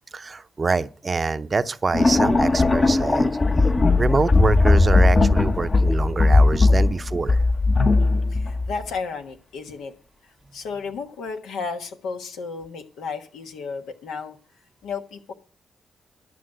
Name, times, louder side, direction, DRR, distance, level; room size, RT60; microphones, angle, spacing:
voice 1, 0.1-3.4 4.0-7.4, right 4 dB, 40° right, 0.7 m, -25 dB
sound 1, 1.9-8.8, left 3 dB, 35° left, 0.9 m, -18 dB
voice 2, 8.0-9.9 10.5-14.4 14.8-15.3, left 5 dB, 85° left, 1.3 m, -33 dB
11.5 x 6.0 x 7.6 m
supercardioid pair, 50°, 0 cm